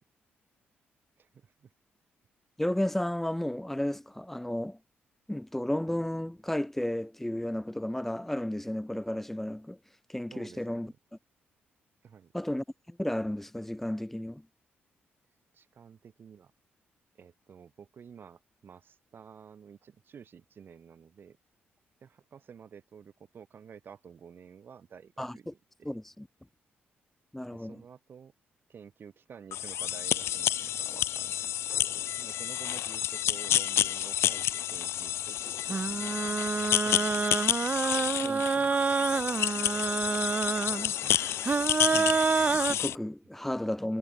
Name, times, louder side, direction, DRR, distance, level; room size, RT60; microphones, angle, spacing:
voice 1, 1.2-1.7 10.3-11.0 12.0-12.3 15.5-16.5 17.1-21.4 22.0-25.9 27.5-28.3 28.7-35.4 35.7-36.4 36.7-37.4, right 7 dB, 55° right, 7.7 m, -51 dB
voice 2, 2.6-4.8 5.3-9.8 10.1-10.9 12.3-14.4 25.2-25.5 25.8-26.3 27.3-27.8 38.2-38.8 41.0-41.2 41.9-44.0, left 1 dB, 5° left, 0.7 m, -33 dB
sound 1, 29.5-43.0, left 12 dB, 80° left, 1.2 m, -30 dB
sound 2, 35.7-42.7, right 4 dB, 35° right, 0.9 m, -28 dB
cardioid pair, 85°, 4 cm